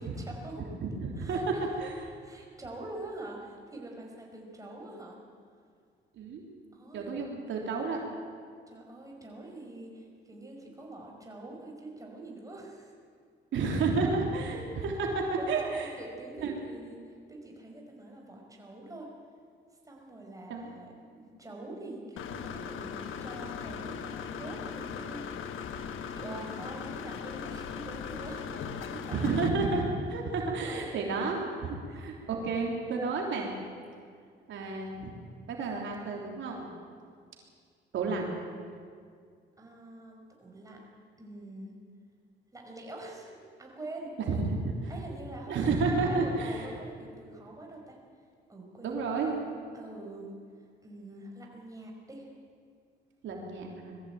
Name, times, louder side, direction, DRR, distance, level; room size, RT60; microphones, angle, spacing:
voice 1, 0.0-0.7 1.2-1.7 2.2-5.2 6.7-7.1 8.7-12.9 15.2-17.0 17.3-19.1 19.8-25.2 26.1-29.3 30.4-31.3 31.9-32.0 39.6-40.8 41.2-41.7 42.5-44.1 44.9-45.7 46.0-48.0 48.5-49.0 49.7-50.3 50.8-52.3, right 2 dB, 15° right, 0 dB, 5.3 m, -45 dB
voice 2, 0.8-1.4 1.8-1.9 6.2-6.4 6.9-8.0 13.5-15.9 16.4-16.5 20.5-20.7 26.3-26.5 29.1-33.5 34.5-35.1 35.5-36.7 37.9-38.3 44.2-44.9 45.5-46.7 48.8-49.4 53.2-54.0, right 3 dB, 75° right, 0 dB, 3.3 m, -31 dB
Engine / Mechanisms, 22.2-29.5, left 7 dB, 85° left, 1.3 m, -39 dB
21.0 x 14.5 x 9.0 m, 2.1 s
cardioid pair, 90°, 20 cm